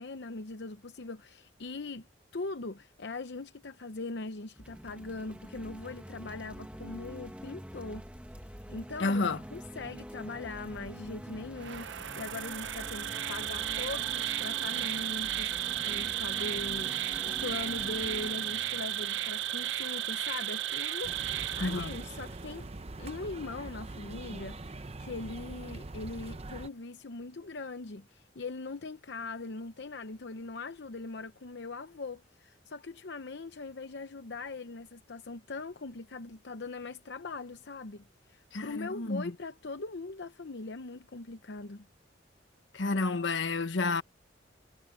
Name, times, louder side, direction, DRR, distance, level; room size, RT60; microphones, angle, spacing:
voice 1, 0.0-2.1 2.3-8.0 8.7-22.7 23.0-41.9, left 3 dB, 65° left, 0.8 m, -41 dB
sound 1, 4.6-20.0, equal, 5° right, 1.3 m, -46 dB
voice 2, 9.0-9.4 21.6-21.9 38.5-39.3 42.7-44.0, left 3 dB, 85° left, 1.3 m, -30 dB
Insect, 11.6-22.4, right 12 dB, 85° right, 0.7 m, -34 dB
sound 2, 21.0-26.7, right 2 dB, 35° right, 0.8 m, -43 dB
head